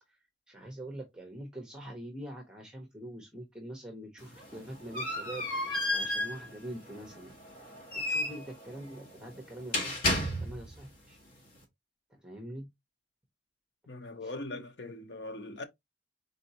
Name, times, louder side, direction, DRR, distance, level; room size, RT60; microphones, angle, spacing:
voice 1, 0.5-5.4 5.9-7.3 7.9-10.1 10.4-11.2 12.1-12.7 14.2-14.3, right 1 dB, 5° right, 0.9 m, -44 dB
sound 1, 4.2-10.8, left 1 dB, 50° left, 1.6 m, -33 dB
voice 2, 13.9-15.6, left 2 dB, 65° left, 0.8 m, -41 dB
4.2 x 4.0 x 2.8 m
head